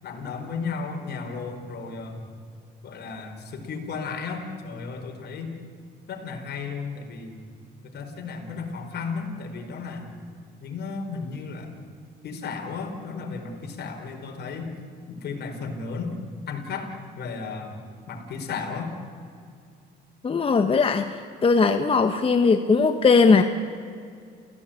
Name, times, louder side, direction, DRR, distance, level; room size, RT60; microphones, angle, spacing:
voice 1, 0.0-2.3 2.8-5.5 6.1-7.3 7.8-10.1 10.6-11.7 12.2-14.7 15.1-16.1 16.5-16.9 17.2-17.7 18.1-18.9, left 4 dB, 60° left, 4 dB, 4.6 m, -34 dB
voice 2, 20.2-21.1 21.4-23.4, left 4 dB, 30° left, 7 dB, 1.2 m, -19 dB
29.5 x 16.5 x 8.9 m, 2.4 s
cardioid pair, 100°, 19 cm